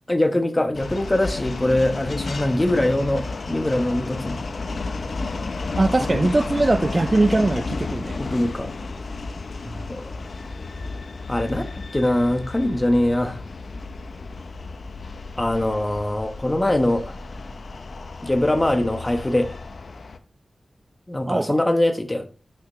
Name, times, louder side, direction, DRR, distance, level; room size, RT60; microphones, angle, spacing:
voice 1, 0.1-4.4 6.1-6.2 8.2-8.7 9.9-10.0 11.3-13.4 15.4-17.1 18.2-19.6 21.1-22.3, left 1 dB, 20° left, 1.1 m, -22 dB
sound 1, 0.7-20.2, left 3 dB, 65° left, 0.7 m, -32 dB
voice 2, 5.8-8.2 9.7-9.8 21.3-21.6, right 2 dB, 35° right, 0.4 m, -21 dB
9.3 x 5.9 x 3.1 m
cardioid pair, 60°, 0 cm